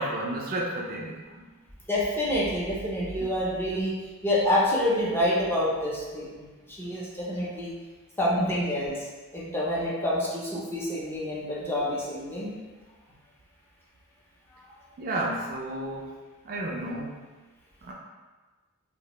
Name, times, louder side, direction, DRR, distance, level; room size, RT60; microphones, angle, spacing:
voice 1, 0.0-1.5 8.4-8.5 15.0-16.1 16.5-17.2 17.9-18.0, right 1 dB, 40° right, -2 dB, 0.3 m, -32 dB
voice 2, 1.9-3.9 4.2-6.4 6.8-7.7 8.2-8.9 9.3-12.5, left 1 dB, 10° left, -6 dB, 0.5 m, -27 dB
2.7 x 2.0 x 2.9 m, 1.3 s
head